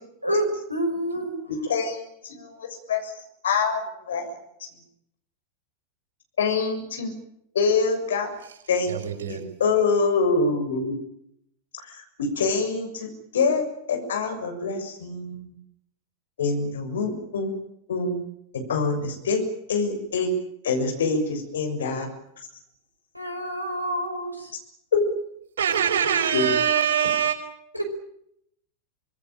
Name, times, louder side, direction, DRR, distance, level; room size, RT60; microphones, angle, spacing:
voice 1, 0.2-1.4 23.1-24.5 27.7-27.8, right 1 dB, 90° left, 4 dB, 5.5 m, -28 dB
voice 2, 1.5-3.1 3.4-4.4 6.4-7.1 7.5-8.3 8.7-8.9 9.3-11.0 11.8-15.6 16.4-17.5 17.9-18.2 18.5-19.4 19.7-20.3 20.6-22.1 24.9-25.0 26.3-26.5, left 4 dB, 65° left, 5 dB, 6.8 m, -25 dB
voice 3, 8.9-9.4 25.6-27.4, right 8 dB, 60° right, 5 dB, 5.4 m, -23 dB
26.0 x 20.0 x 9.1 m, 0.75 s
figure-of-eight pair, 90°, 0 cm